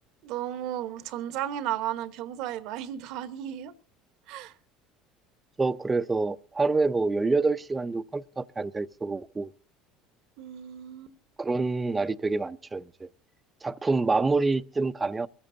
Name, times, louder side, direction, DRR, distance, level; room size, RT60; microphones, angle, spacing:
voice 1, 0.2-3.7 4.3-4.6 10.4-11.2, right 11 dB, 65° right, 1.1 m, -34 dB
voice 2, 5.6-9.5 11.4-13.1 13.6-15.3, right 3 dB, 15° right, 0.6 m, -27 dB
23.0 x 14.0 x 2.7 m
supercardioid pair, 105°, 0 cm